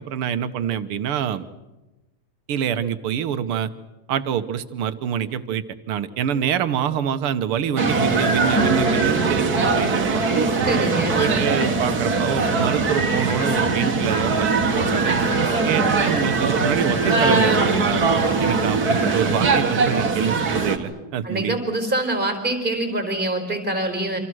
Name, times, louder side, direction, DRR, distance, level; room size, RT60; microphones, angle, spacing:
voice 1, 0.0-1.5 2.5-3.7 4.1-10.2 10.8-15.2 15.7-21.6, right 9 dB, 85° right, 11 dB, 2.0 m, -26 dB
sound 1, 7.8-20.8, right 4 dB, 45° right, 2.4 m, -21 dB
sound 2, 8.5-13.7, right 1 dB, 5° left, 4.5 m, -32 dB
voice 2, 10.6-11.5 15.6-15.9 21.2-24.2, right 2 dB, 20° right, 6 dB, 4.9 m, -25 dB
27.5 x 26.5 x 6.3 m, 1.0 s
omnidirectional pair, 2.3 m